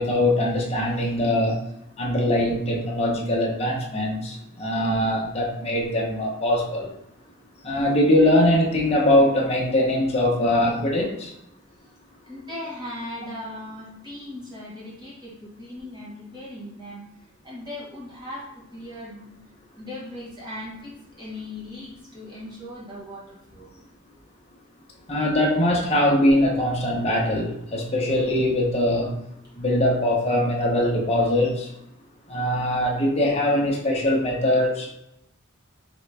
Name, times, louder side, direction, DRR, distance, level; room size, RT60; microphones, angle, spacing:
voice 1, 0.0-1.6 2.0-6.9 7.6-11.3 25.1-29.2 29.6-31.7 32.3-34.9, left 1 dB, 30° left, -3 dB, 0.8 m, -22 dB
voice 2, 12.2-17.0 17.4-19.3 19.8-23.7, left 1 dB, 20° right, -7 dB, 1.2 m, -38 dB
3.9 x 3.3 x 3.3 m, 0.78 s
head